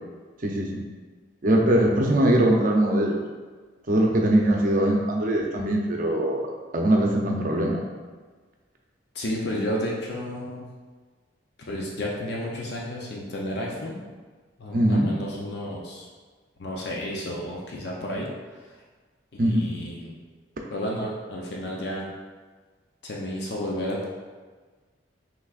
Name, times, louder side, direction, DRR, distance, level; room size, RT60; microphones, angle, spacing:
voice 1, 0.4-0.8 1.4-3.2 3.9-7.8 14.7-15.1 19.4-19.7, right 1 dB, 45° right, 0 dB, 0.6 m, -22 dB
voice 2, 9.1-10.6 11.7-14.0 14.6-16.1 16.6-18.3 19.3-20.1 20.7-22.1 23.0-24.0, left 1 dB, 55° left, -3 dB, 0.6 m, -31 dB
5.9 x 3.3 x 2.4 m, 1.4 s
head